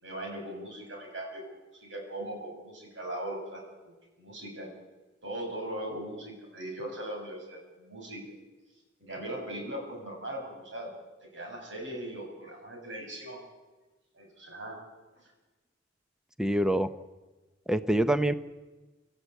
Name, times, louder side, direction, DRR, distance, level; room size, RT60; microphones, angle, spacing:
voice 1, 0.0-1.4 1.7-4.7 5.2-8.2 9.0-10.9 11.3-13.4 14.1-14.8 15.2-15.3, right 1 dB, 80° right, 1 dB, 7.6 m, -39 dB
voice 2, 16.4-16.9 17.7-18.3, right 1 dB, 5° right, 11 dB, 0.7 m, -25 dB
26.0 x 14.0 x 8.3 m, 1.2 s
head